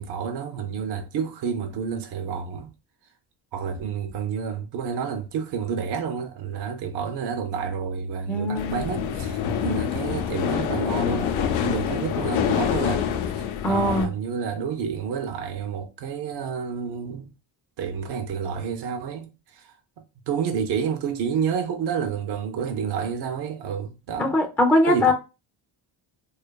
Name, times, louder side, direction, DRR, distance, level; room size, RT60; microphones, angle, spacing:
voice 1, 0.0-2.7 3.5-17.3 17.8-19.7 20.3-24.3 24.9-25.1, right 7 dB, 60° right, 0.5 m, -30 dB
voice 2, 8.3-8.9 9.6-9.9 13.6-14.1 24.2-25.1, left 1 dB, 5° left, 0.3 m, -22 dB
sound 1, 8.5-14.1, left 8 dB, 80° left, 0.5 m, -26 dB
2.6 x 2.4 x 2.2 m
cardioid pair, 85°, 46 cm